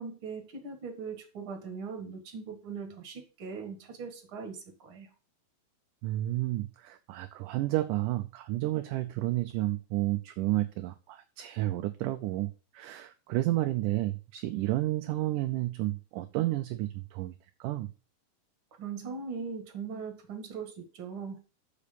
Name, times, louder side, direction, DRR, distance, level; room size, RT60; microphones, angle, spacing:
voice 1, 0.0-5.1 18.8-21.4, right 5 dB, 40° right, 4 dB, 2.5 m, -40 dB
voice 2, 6.0-17.3 17.6-17.9, right 17 dB, 80° right, 8 dB, 2.0 m, -31 dB
6.8 x 6.5 x 6.9 m, 0.34 s
omnidirectional pair, 3.9 m